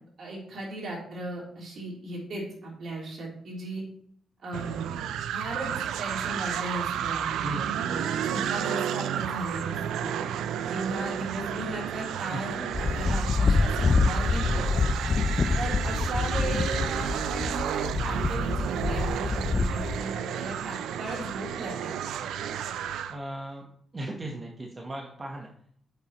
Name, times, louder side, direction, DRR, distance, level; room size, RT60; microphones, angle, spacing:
voice 1, 0.2-3.8 4.4-7.3 7.8-10.1 10.7-14.9 15.5-22.0, right 2 dB, 65° right, -3 dB, 3.3 m, -37 dB
sound 1, 4.5-23.2, right 9 dB, 90° right, 0.4 m, -32 dB
voice 2, 7.4-7.8 12.3-12.7 13.1-13.3 14.5-14.8 23.1-23.7 23.9-25.5, right 1 dB, 35° right, 0 dB, 1.2 m, -38 dB
sound 2, 12.7-20.0, left 4 dB, 40° left, 0.5 m, -26 dB
8.6 x 6.9 x 3.0 m, 0.65 s
cardioid pair, 70°, 0 cm